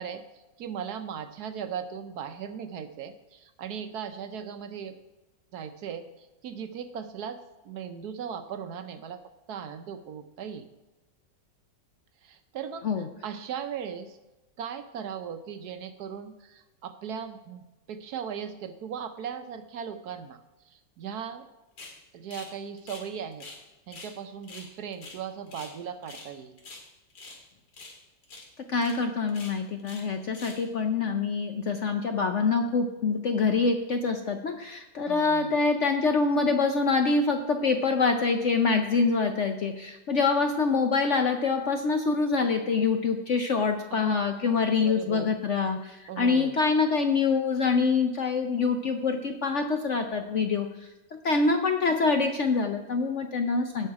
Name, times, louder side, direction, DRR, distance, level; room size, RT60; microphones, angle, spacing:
voice 1, 0.0-5.0 5.5-9.2 9.5-10.6 12.2-14.2 14.6-20.4 20.7-21.4 22.1-23.5 23.9-26.5 35.1-35.6 43.9-44.1 44.5-45.3 46.1-46.6, right 7 dB, 65° right, 9 dB, 1.2 m, -38 dB
sound 1, 21.8-22.0 22.3-22.5 22.8-23.6 23.9-24.1 24.4-25.8 26.0-26.3 26.6-27.4 27.7-28.0 28.2-28.5 28.8-29.0 29.3-30.1 30.3-30.7, left 3 dB, 80° left, 2.7 m, -45 dB
voice 2, 28.7-50.7 51.2-53.9, left 4 dB, 60° left, 5 dB, 0.8 m, -25 dB
17.0 x 5.6 x 4.7 m, 1.1 s
omnidirectional pair, 1.9 m